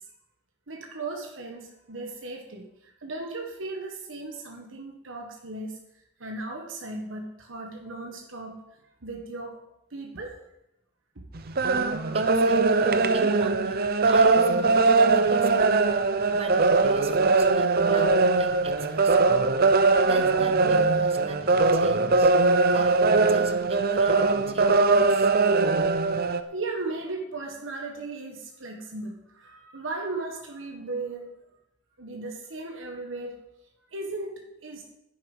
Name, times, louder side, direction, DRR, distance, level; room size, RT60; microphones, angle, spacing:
voice 1, 0.7-2.7 3.0-5.8 6.2-8.6 9.0-9.6 9.9-10.4 18.5-18.6 26.5-31.3 32.0-33.4 33.9-34.8, right 2 dB, 75° right, 1 dB, 1.5 m, -36 dB
sound 1, 11.4-26.4, right 3 dB, 50° right, 0.7 m, -21 dB
voice 2, 12.1-15.7 16.3-19.2 20.0-22.3 22.7-25.3, right 3 dB, 30° right, 8 dB, 1.0 m, -41 dB
10.5 x 9.7 x 5.5 m, 0.85 s
head